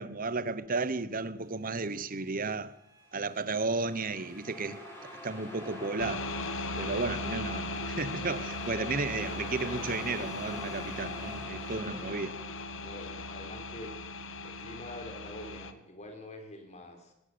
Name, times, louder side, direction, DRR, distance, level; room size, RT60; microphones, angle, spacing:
voice 1, 0.0-2.7 3.1-4.8 5.2-6.3 6.8-12.3, right 3 dB, 40° right, 1.1 m, -33 dB
sound 1, 1.3-12.2, right 1 dB, 20° right, 4.9 m, -59 dB
sound 2, 3.2-13.0, left 1 dB, 15° left, 7.7 m, -46 dB
sound 3, 6.0-15.7, left 2 dB, 65° left, 1.4 m, -38 dB
voice 2, 11.8-12.4 12.8-14.0 14.4-17.1, left 1 dB, 35° left, 4.2 m, -46 dB
20.0 x 18.0 x 7.0 m
head